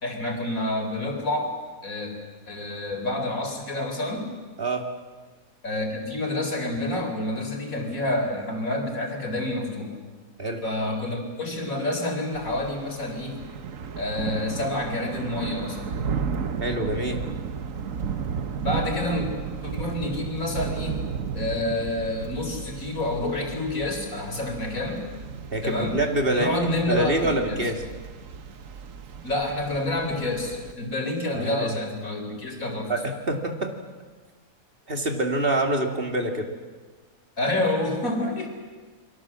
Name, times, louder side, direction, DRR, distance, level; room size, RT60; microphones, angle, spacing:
voice 1, 0.0-1.5 1.8-2.1 2.5-4.3 5.6-10.0 10.6-13.4 14.0-15.9 18.6-19.3 19.6-21.0 21.3-25.0 25.6-26.0 26.3-27.7 29.2-32.9 37.4-38.5, left 1 dB, 75° left, 3 dB, 4.6 m, -28 dB
Thunder / Rain, 12.3-30.7, right 6 dB, 70° right, 1.5 m, -34 dB
voice 2, 16.6-17.2 25.5-27.8 31.3-31.7 32.9-33.7 34.9-36.5, right 1 dB, 40° right, 4 dB, 2.6 m, -26 dB
29.5 x 22.5 x 7.6 m, 1.4 s
omnidirectional pair, 1.5 m